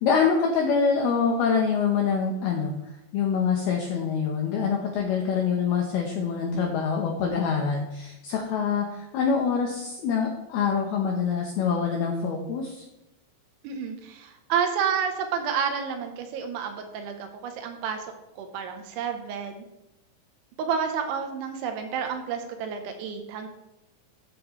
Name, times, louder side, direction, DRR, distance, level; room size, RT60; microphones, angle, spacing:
voice 1, 0.0-2.7 3.1-12.8, left 6 dB, 80° left, 1 dB, 2.2 m, -25 dB
voice 2, 13.6-18.1 18.4-19.6 20.6-23.5, right 7 dB, 75° right, 6 dB, 3.1 m, -30 dB
13.5 x 8.4 x 3.1 m, 0.91 s
omnidirectional pair, 5.8 m